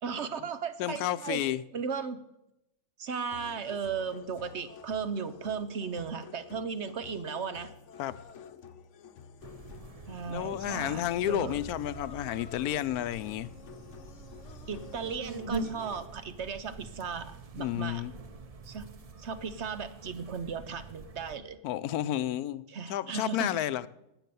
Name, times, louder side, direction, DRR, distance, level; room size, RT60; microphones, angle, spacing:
voice 1, 0.0-1.4 1.7-2.2 3.0-7.7 10.1-11.6 14.7-18.0 18.6-18.8 19.2-21.6 22.7-23.5, right 6 dB, 55° right, 1.0 m, -36 dB
voice 2, 0.8-1.6 8.0-8.2 10.3-13.5 17.6-18.1 21.6-23.9, left 12 dB, 85° left, 1.1 m, -31 dB
sound 1, 3.3-16.1, left 7 dB, 60° left, 1.0 m, -50 dB
sound 2, 9.4-21.4, right 3 dB, 35° right, 0.6 m, -44 dB
12.0 x 9.0 x 6.9 m
omnidirectional pair, 1.6 m